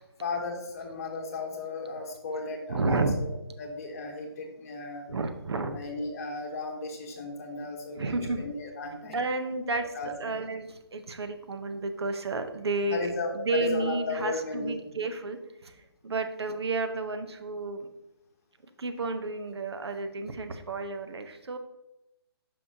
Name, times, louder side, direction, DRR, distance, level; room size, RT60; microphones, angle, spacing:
voice 1, 0.2-3.3 3.6-5.1 5.7-9.2 9.9-10.4 12.9-14.8, left 3 dB, 35° left, 2 dB, 1.1 m, -35 dB
voice 2, 2.7-3.2 5.1-5.8 8.0-8.5 9.1-15.8 16.0-17.9 18.8-21.6, right 3 dB, 75° right, 8 dB, 0.8 m, -31 dB
6.7 x 5.6 x 2.7 m, 0.91 s
hypercardioid pair, 165°, 14 cm